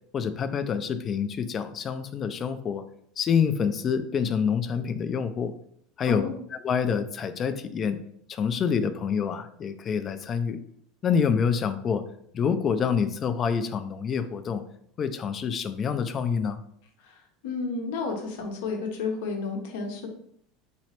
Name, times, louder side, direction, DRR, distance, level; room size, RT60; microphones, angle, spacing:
voice 1, 0.1-2.8 3.2-5.5 6.0-6.2 6.5-8.0 8.3-10.6 11.0-12.0 12.3-14.6 15.0-16.6, left 6 dB, 35° left, 11 dB, 0.3 m, -27 dB
voice 2, 6.0-6.4 17.0-17.2 17.4-20.1, left 4 dB, 75° left, 3 dB, 0.8 m, -31 dB
3.1 x 3.0 x 2.9 m, 0.67 s
supercardioid pair, 100°, 0 cm